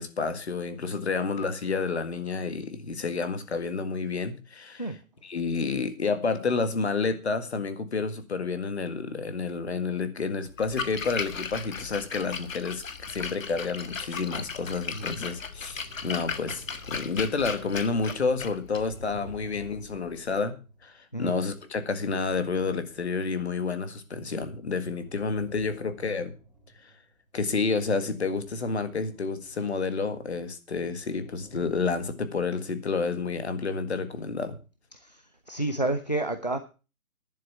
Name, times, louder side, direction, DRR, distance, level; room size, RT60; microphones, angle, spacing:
voice 1, 0.0-5.0 5.2-20.6 20.8-26.3 26.8-26.9 27.3-34.6, left 4 dB, 50° left, 10 dB, 1.8 m, -30 dB
Splash splatter, 10.5-20.4, left 5 dB, 65° left, 1.6 m, -37 dB
Iron Lung, 15.6-17.9 18.6-21.3 21.7-24.2 24.5-27.4 27.9-32.5, right 2 dB, 5° left, 3.0 m, -50 dB
voice 2, 35.5-36.6, right 2 dB, 30° left, 10 dB, 0.5 m, -29 dB
11.0 x 7.6 x 7.0 m, 0.34 s
hypercardioid pair, 175°, 42 cm